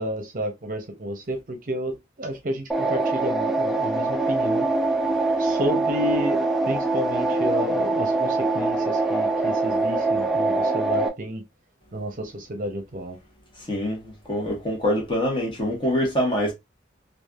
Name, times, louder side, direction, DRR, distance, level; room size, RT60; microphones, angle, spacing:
voice 1, 0.0-4.7 5.4-11.4 11.9-13.2, equal, 45° right, 0.7 m, -31 dB
sound 1, 2.7-11.1, right 2 dB, ahead, 0.4 m, -23 dB
voice 2, 13.7-16.5, equal, 25° left, 1.1 m, -25 dB
3.2 x 2.4 x 2.3 m
head